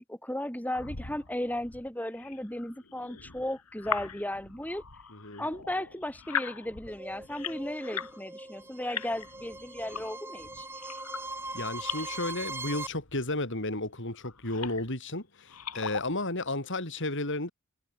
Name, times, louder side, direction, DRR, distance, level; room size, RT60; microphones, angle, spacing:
voice 1, 0.0-4.8 5.4-10.7, left 1 dB, 5° left, 5.2 m, -35 dB
sound 1, 0.7-8.2 8.5-12.1 12.9-13.5 14.1-15.0 15.4-16.3, left 7 dB, 90° left, 3.2 m, -40 dB
voice 2, 5.1-5.4 11.5-17.5, left 2 dB, 55° left, 6.2 m, -33 dB
sound 2, 6.9-12.9, right 2 dB, 10° right, 7.3 m, -41 dB
head